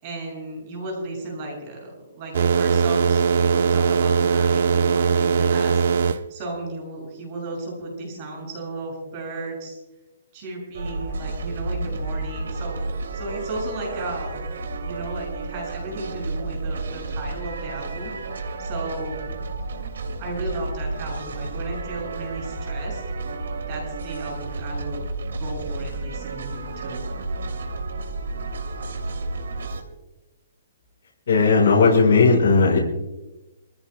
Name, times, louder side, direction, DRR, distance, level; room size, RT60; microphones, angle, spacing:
voice 1, 0.0-9.8 10.3-14.4 14.8-18.1 18.6-19.3 20.2-23.0 23.7-25.1 25.4-27.0, right 2 dB, 30° right, -2 dB, 6.9 m, -34 dB
sound 1, 2.3-6.2, right 5 dB, 60° right, 0.8 m, -20 dB
sound 2, 10.7-29.8, right 3 dB, 85° right, 2.6 m, -31 dB
voice 2, 31.3-32.8, left 4 dB, 65° left, -3 dB, 4.9 m, -16 dB
28.5 x 15.5 x 2.2 m, 1.0 s
hypercardioid pair, 170°, 0 cm